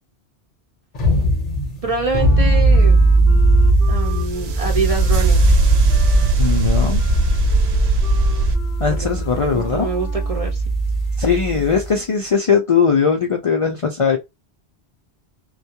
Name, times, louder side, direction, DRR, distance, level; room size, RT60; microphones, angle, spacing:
sound 1, 0.9-11.9, right 2 dB, 40° left, 0.8 m, -18 dB
voice 1, 1.8-3.1 3.9-5.6 7.8-7.9 9.0-10.6 11.3-11.6, right 3 dB, 40° right, 0.6 m, -26 dB
Wind instrument woodwind instrument, 2.2-10.6, right 1 dB, ahead, 0.8 m, -40 dB
sound 2, 4.0-8.6, right 1 dB, 70° right, 0.8 m, -19 dB
voice 2, 6.4-7.2 8.8-9.9 11.2-14.2, left 6 dB, 60° left, 0.3 m, -19 dB
2.3 x 2.2 x 2.7 m
omnidirectional pair, 1.1 m